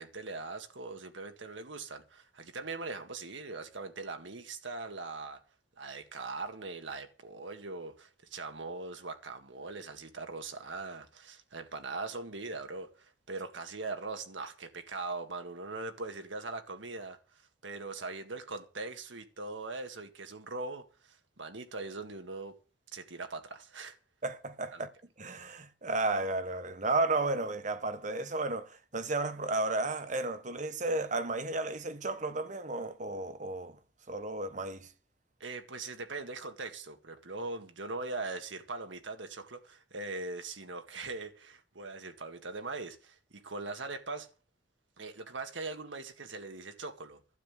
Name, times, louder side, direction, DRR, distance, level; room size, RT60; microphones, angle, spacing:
voice 1, 0.0-5.4 5.8-17.2 17.6-22.5 22.9-24.0 24.7-24.8 35.4-44.3 45.0-47.2, right 3 dB, 90° right, 1.8 m, -41 dB
voice 2, 24.2-24.9 25.2-33.8 34.1-34.9, right 2 dB, 40° right, 1.2 m, -33 dB
12.0 x 8.5 x 7.6 m
head